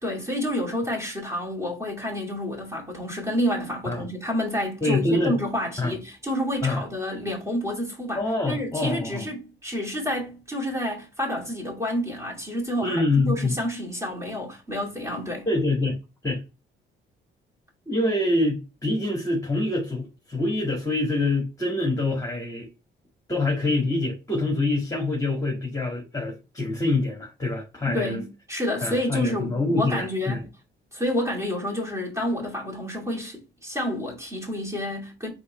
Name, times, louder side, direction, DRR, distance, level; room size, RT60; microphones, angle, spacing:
voice 1, 0.0-15.5 27.9-30.5 30.9-35.3, left 1 dB, 15° right, 2.5 m, -29 dB
voice 2, 4.8-5.4 5.8-5.9 6.6-6.8 8.2-9.2 12.8-13.6 15.5-16.0 16.2-16.4 17.9-22.7 23.3-28.2 28.8-30.4, left 2 dB, 15° left, 1.8 m, -25 dB
4.1 x 3.0 x 4.1 m
cardioid pair, 90°, 20 cm